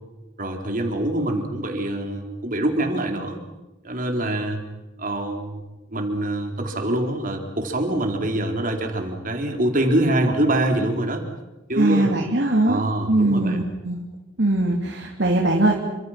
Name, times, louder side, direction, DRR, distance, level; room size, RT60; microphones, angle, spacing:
voice 1, 0.4-3.4 3.8-4.6 5.0-5.6 5.9-11.2 11.7-12.1 12.6-13.6, right 1 dB, 45° right, 3 dB, 4.1 m, -24 dB
voice 2, 11.8-12.8 13.1-14.0 14.4-15.8, right 2 dB, 65° right, 0 dB, 3.1 m, -21 dB
29.5 x 26.0 x 6.0 m, 1.1 s
head